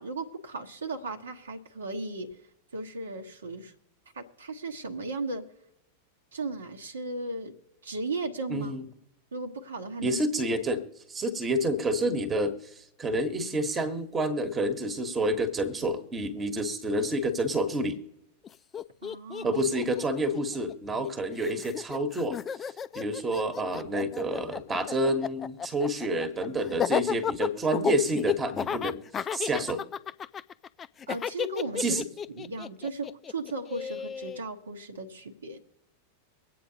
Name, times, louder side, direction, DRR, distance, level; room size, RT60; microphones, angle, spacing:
voice 1, 0.0-2.3 2.7-3.7 4.1-5.5 6.3-7.5 7.8-8.7 9.3-10.2 19.0-19.6 31.1-32.0 32.3-35.6, right 2 dB, 70° right, 3 dB, 1.2 m, -36 dB
voice 2, 8.5-8.8 10.0-10.8 11.1-18.0 19.4-22.4 22.9-29.8 31.8-32.1, right 1 dB, 20° right, 9 dB, 1.3 m, -29 dB
Laughter, 18.4-18.5 18.7-21.1 21.4-34.4, left 7 dB, 25° left, 0.3 m, -33 dB
23.5 x 8.6 x 2.8 m, 0.86 s
figure-of-eight pair, 90°, 0 cm